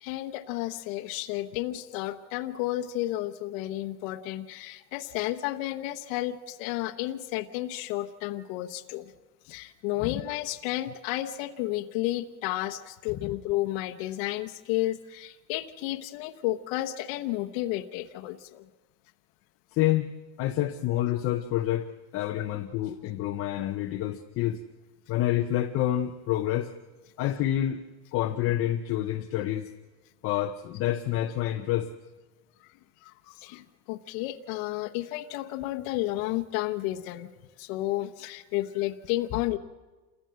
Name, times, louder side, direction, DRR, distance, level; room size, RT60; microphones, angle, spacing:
voice 1, 0.0-9.1 9.4-18.7 22.4-22.5 33.0-37.3 37.6-39.6, left 16 dB, 55° left, 7 dB, 0.9 m, -32 dB
voice 2, 19.7-20.1 20.4-24.6 25.1-26.7 27.2-27.9 28.1-29.7 30.2-31.9, left 13 dB, 30° left, 5 dB, 0.6 m, -28 dB
27.5 x 15.0 x 7.6 m, 1.3 s
supercardioid pair, 155°, 49 cm